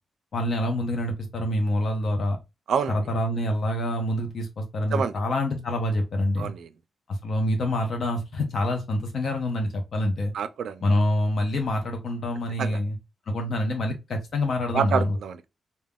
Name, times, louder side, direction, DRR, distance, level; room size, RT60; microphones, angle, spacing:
voice 1, 0.3-2.4 2.9-6.5 7.1-10.3 10.8-13.0 13.3-15.2, left 1 dB, 55° left, 0.5 m, -26 dB
voice 2, 2.7-3.0 4.9-5.1 6.4-6.7 10.3-10.8 12.6-12.8 14.7-15.5, right 7 dB, 80° right, 0.3 m, -27 dB
2.3 x 2.1 x 3.3 m
wide cardioid pair, 135°, 0 cm